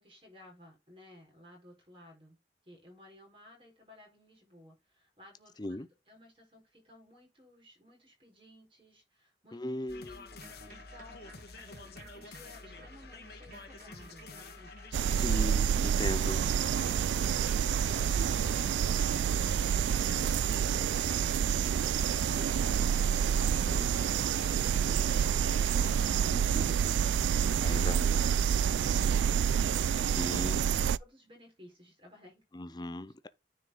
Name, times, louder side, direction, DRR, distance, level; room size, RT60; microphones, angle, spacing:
voice 1, 0.0-2.4 2.6-5.8 6.1-10.3 10.6-15.3 16.1-23.6 23.9-30.2 30.4-32.4, left 1 dB, 30° right, 4.1 m, -56 dB
voice 2, 9.5-10.3 15.1-16.4 23.7-24.0 26.2-26.9 27.6-28.1 30.1-30.6 32.5-33.3, left 1 dB, 25° left, 0.6 m, -38 dB
sound 1, 9.9-26.0, left 3 dB, 60° left, 1.4 m, -49 dB
sound 2, 10.3-23.1, right 2 dB, 50° right, 3.6 m, -55 dB
sound 3, 14.9-31.0, right 8 dB, 80° right, 0.3 m, -28 dB
9.7 x 4.6 x 3.7 m
head